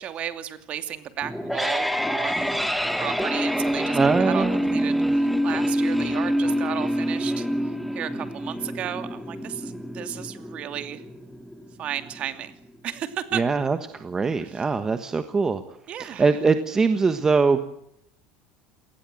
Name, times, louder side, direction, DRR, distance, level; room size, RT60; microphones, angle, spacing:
voice 1, 0.0-2.6 3.0-7.5 7.9-11.0 11.8-12.5 12.8-13.4 14.4-14.6 15.9-16.3, right 10 dB, 40° right, 10 dB, 2.7 m, -34 dB
sound 1, 1.2-12.2, equal, ahead, 1.8 m, -26 dB
voice 2, 3.9-4.7 13.3-15.6 16.0-17.6, right 4 dB, 15° right, 9 dB, 1.3 m, -22 dB
28.0 x 19.5 x 7.8 m, 0.76 s
cardioid pair, 145°, 3 cm